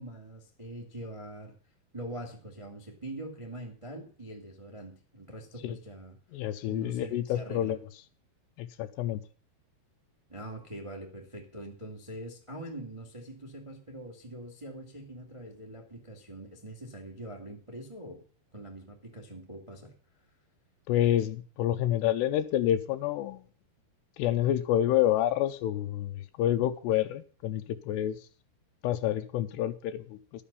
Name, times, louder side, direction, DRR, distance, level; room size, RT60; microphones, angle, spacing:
voice 1, 0.0-1.5 1.9-6.1 6.7-7.8 10.3-18.2 18.5-19.9, right 1 dB, 25° right, 0.7 m, -43 dB
voice 2, 6.3-7.8 8.6-9.2 20.9-23.4 24.2-28.2 28.8-30.4, left 12 dB, 80° left, 2.6 m, -28 dB
13.0 x 7.2 x 6.9 m
omnidirectional pair, 5.2 m